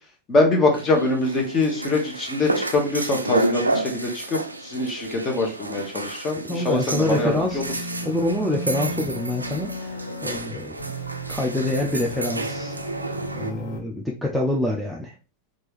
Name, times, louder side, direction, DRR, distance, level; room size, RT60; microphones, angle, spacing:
voice 1, 0.3-7.3, left 2 dB, 25° left, 2 dB, 1.2 m, -23 dB
sound 1, 0.7-13.5, right 2 dB, 80° right, 0.4 m, -31 dB
voice 2, 6.4-7.6 8.0-10.8 11.3-12.8 13.3-15.1, left 1 dB, ahead, -2 dB, 0.5 m, -26 dB
sound 2, 6.9-10.4 10.8-13.8, equal, 55° left, 0.9 m, -34 dB
4.4 x 2.6 x 3.3 m, 0.33 s
figure-of-eight pair, 90°, 0 cm